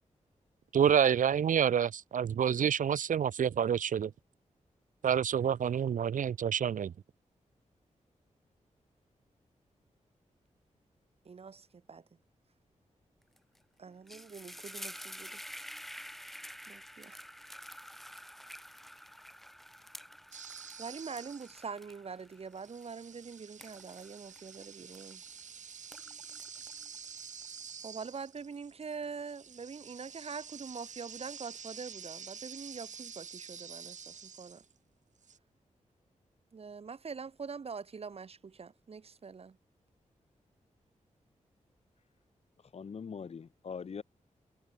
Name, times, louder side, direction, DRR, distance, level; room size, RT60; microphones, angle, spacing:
voice 1, 0.7-4.1 5.0-6.9, right 8 dB, 90° right, 1.1 m, -28 dB
voice 2, 11.3-12.0 13.8-15.4 16.7-17.2 20.8-25.2 27.8-34.6 36.5-39.6, right 5 dB, 50° right, 5.5 m, -44 dB
sound 1, 13.4-13.6 13.9-25.4 25.8-27.7, equal, ahead, 7.4 m, -49 dB
sound 2, 20.3-21.7 22.5-34.7 35.2-35.4, right 7 dB, 70° right, 3.6 m, -48 dB
voice 3, 42.7-44.0, left 6 dB, 55° left, 2.0 m, -42 dB
wide cardioid pair, 150°, 13 cm